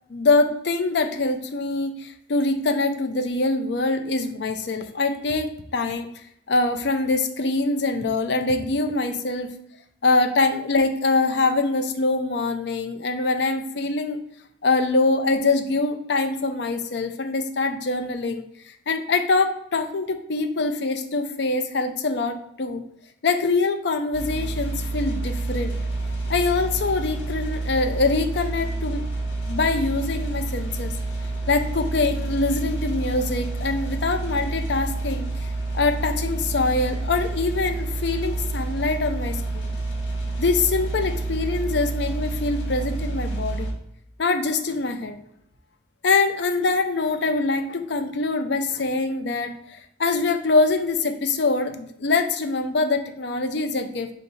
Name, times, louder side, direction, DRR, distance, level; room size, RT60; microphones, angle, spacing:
voice 1, 0.1-6.1 6.5-9.5 10.0-14.2 14.6-22.8 23.2-25.8 26.3-29.0 29.5-30.9 31.5-35.3 35.7-39.7 40.4-43.7 44.2-45.2 46.0-54.1, left 3 dB, 60° left, 7 dB, 0.5 m, -24 dB
sound 1, 24.1-43.7, right 2 dB, 75° left, 1.1 m, -28 dB
4.5 x 2.8 x 4.0 m, 0.76 s
head